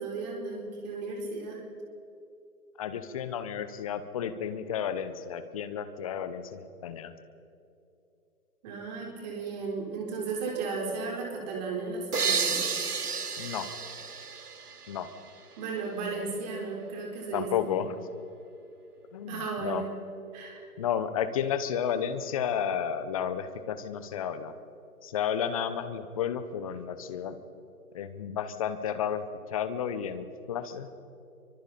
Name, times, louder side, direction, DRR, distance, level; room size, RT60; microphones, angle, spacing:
voice 1, 0.0-1.6 8.6-12.7 15.6-17.7 19.3-19.9 20.3-20.6, right 4 dB, 30° right, -1 dB, 4.3 m, -35 dB
voice 2, 2.8-7.1 13.4-13.7 14.9-15.1 17.3-18.0 19.1-19.8 20.8-24.5 25.0-27.4 27.9-29.2 29.5-30.9, left 8 dB, 25° left, 11 dB, 1.0 m, -32 dB
sound 1, 12.1-15.7, right 5 dB, 85° right, 1.1 m, -32 dB
29.0 x 24.5 x 4.2 m, 2.7 s
figure-of-eight pair, 140°, 44 cm